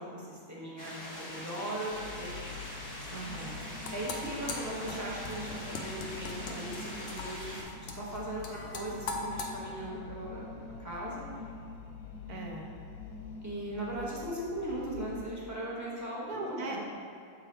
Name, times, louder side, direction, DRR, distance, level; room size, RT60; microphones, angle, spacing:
voice 1, 0.0-2.6 3.9-11.3 13.4-16.8, right 1 dB, 15° right, -6 dB, 0.7 m, -39 dB
sound 1, 0.8-7.6, left 1 dB, 25° left, 1.1 m, -43 dB
sound 2, 1.9-15.2, left 5 dB, 70° left, 1.0 m, -46 dB
voice 2, 3.1-3.7 12.3-12.7 16.0-16.8, right 3 dB, 60° right, 0 dB, 1.2 m, -40 dB
sound 3, 3.6-9.5, left 3 dB, 85° left, 0.6 m, -41 dB
7.0 x 3.9 x 4.4 m, 2.3 s
omnidirectional pair, 2.1 m